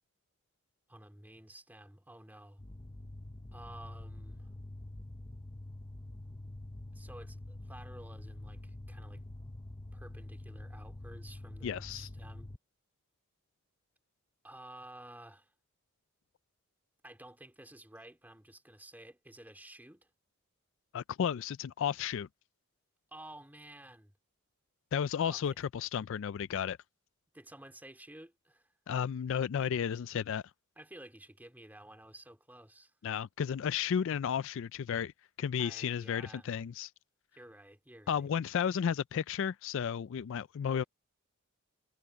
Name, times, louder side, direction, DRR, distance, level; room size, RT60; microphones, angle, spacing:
voice 1, 0.9-2.6 3.5-4.5 6.9-9.2 9.9-12.5 14.4-15.5 17.0-20.1 23.1-24.1 25.2-25.6 27.3-28.7 30.8-32.9 35.6-36.5 37.3-38.3 40.6-40.9, right 1 dB, 10° right, 2.5 m, -52 dB
sound 1, 2.6-12.6, left 1 dB, 20° left, 0.7 m, -46 dB
voice 2, 11.6-12.1 20.9-22.3 24.9-26.8 28.9-30.4 33.0-35.1 35.4-36.9 38.1-40.8, left 8 dB, 60° left, 0.3 m, -33 dB
head